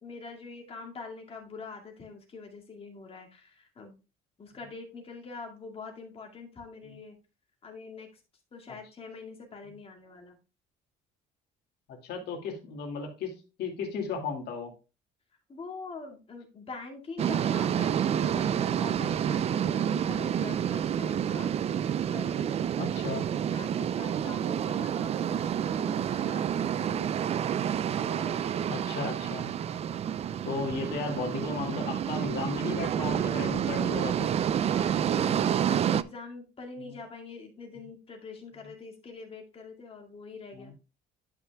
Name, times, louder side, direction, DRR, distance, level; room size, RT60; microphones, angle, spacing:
voice 1, 0.0-4.0 4.4-7.2 7.6-8.1 8.5-10.4 15.5-21.5 22.1-22.5 23.1-27.2 28.0-28.6 34.6-40.7, left 4 dB, 35° left, 1 dB, 2.2 m, -44 dB
voice 2, 11.9-14.7 22.8-23.2 28.7-29.5 30.4-34.3 36.8-37.0 40.5-40.7, left 4 dB, 70° left, 2 dB, 2.3 m, -35 dB
sound 1, 17.2-36.0, right 9 dB, 40° right, 0.3 m, -29 dB
11.0 x 5.8 x 2.3 m, 0.30 s
cardioid pair, 110°, 17 cm